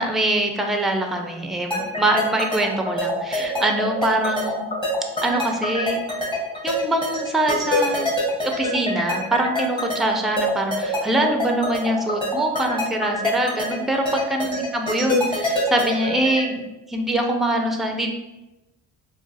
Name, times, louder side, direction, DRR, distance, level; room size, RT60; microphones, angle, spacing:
voice 1, 0.0-4.6 5.2-6.0 6.6-8.1 8.4-18.1, right 1 dB, ahead, 3 dB, 0.4 m, -23 dB
sound 1, 1.7-16.4, left 2 dB, 15° left, 0.9 m, -25 dB
2.4 x 2.3 x 3.9 m, 1.0 s
cardioid pair, 90°, 30 cm